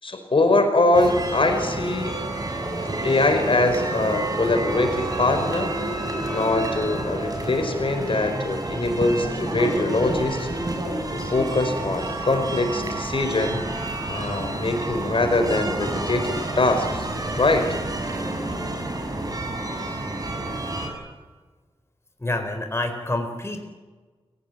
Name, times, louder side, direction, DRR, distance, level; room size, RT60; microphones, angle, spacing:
voice 1, 0.0-2.2 3.0-5.7 6.3-10.5 11.1-13.6 14.1-17.1 17.4-17.7, left 2 dB, 60° left, 6 dB, 5.0 m, -23 dB
sound 1, 0.9-20.9, right 2 dB, 35° right, 6.6 m, -29 dB
voice 2, 22.2-23.6, left 2 dB, 25° left, 6 dB, 4.2 m, -27 dB
29.5 x 17.0 x 9.5 m, 1.4 s
cardioid pair, 55°, 10 cm